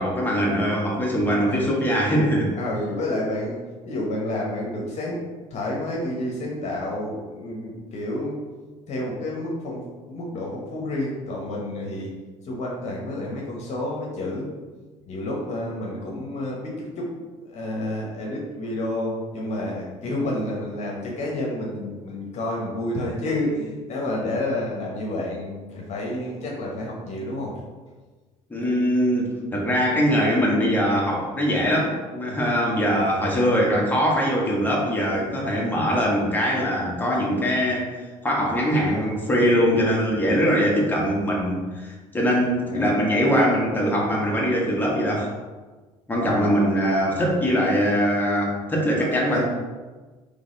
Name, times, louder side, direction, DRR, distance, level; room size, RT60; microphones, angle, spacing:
voice 1, 0.0-2.5 28.5-37.9 38.2-45.3 46.1-49.4, equal, 15° left, -4 dB, 1.4 m, -22 dB
voice 2, 2.6-3.6 3.8-5.2 5.5-8.4 8.9-9.8 10.1-12.1 12.4-14.5 15.1-17.1 17.4-27.5 38.7-39.1 41.0-41.1 42.6-42.9 46.2-46.6 49.0-49.4, left 1 dB, 50° left, -3 dB, 1.2 m, -29 dB
3.9 x 3.3 x 3.9 m, 1.3 s
supercardioid pair, 75°, 15 cm